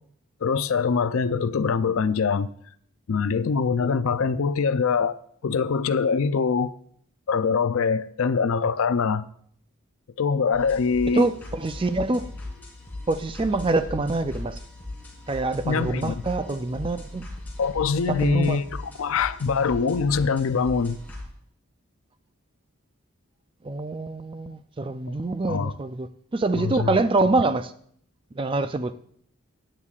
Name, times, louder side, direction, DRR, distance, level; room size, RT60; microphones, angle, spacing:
voice 1, 0.4-2.5 3.1-6.7 7.3-9.2 10.2-11.3 15.6-16.2 17.6-21.0 25.5-25.7 26.5-27.0, left 5 dB, 70° left, 0.5 m, -23 dB
sound 1, 10.5-21.2, left 2 dB, 10° left, 2.9 m, -39 dB
voice 2, 11.1-12.3 13.1-14.6 15.3-17.2 18.1-18.6 23.6-27.7 28.4-28.9, right 2 dB, 25° right, 0.4 m, -25 dB
17.0 x 9.9 x 2.4 m
head